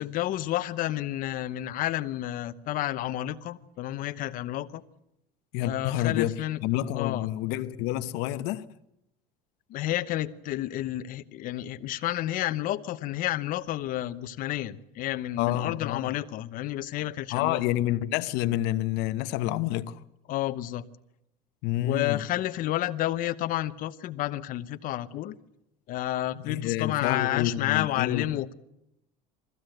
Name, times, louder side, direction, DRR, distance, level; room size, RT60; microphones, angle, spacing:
voice 1, 0.0-4.8 5.6-6.6 6.9-7.3 9.7-17.6 20.3-20.9 21.8-25.3 25.9-28.5, left 14 dB, 50° left, 1.0 m, -30 dB
voice 2, 5.5-8.6 15.4-16.1 17.3-20.0 21.6-22.2 26.4-28.3, left 14 dB, 70° left, 1.0 m, -28 dB
22.0 x 15.0 x 7.9 m
cardioid pair, 145°, 18 cm